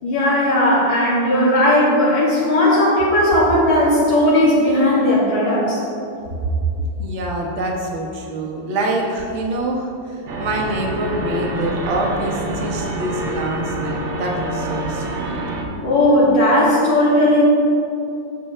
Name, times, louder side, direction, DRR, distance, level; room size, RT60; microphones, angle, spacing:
voice 1, 0.0-5.8 15.8-17.5, left 1 dB, 85° left, -7 dB, 3.2 m, -16 dB
voice 2, 7.0-15.4, right 1 dB, 40° right, 0 dB, 1.4 m, -25 dB
sound 1, 10.3-15.6, right 2 dB, 85° right, 2.0 m, -26 dB
16.0 x 6.1 x 3.3 m, 2.7 s
omnidirectional pair, 2.1 m